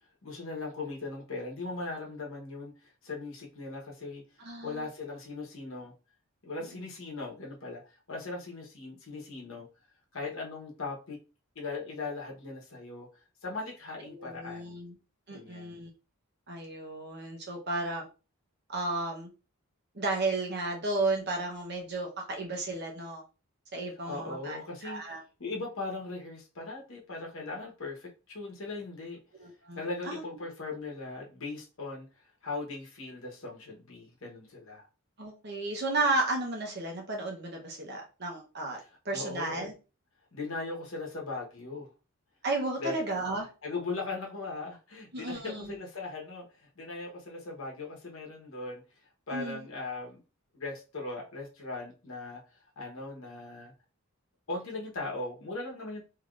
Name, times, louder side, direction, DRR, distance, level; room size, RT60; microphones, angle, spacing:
voice 1, 0.2-5.9 6.4-9.7 10.1-11.2 11.5-13.1 13.4-14.8 15.3-15.8 24.1-29.2 29.8-32.1 32.4-34.9 38.8-38.9 39.1-39.7 40.3-41.9 42.8-42.9 43.6-48.8 49.3-50.2 50.5-53.7 54.5-56.0, left 3 dB, 65° left, 1.1 m, -39 dB
voice 2, 4.4-4.8 6.6-6.8 14.1-14.9 15.3-15.9 16.5-18.1 18.7-19.3 19.9-23.2 23.7-25.2 29.4-30.2 35.2-38.8 39.0-39.7 42.4-43.5 45.1-45.8 49.3-49.7, right 2 dB, 45° right, 0.9 m, -33 dB
3.4 x 2.8 x 2.4 m
head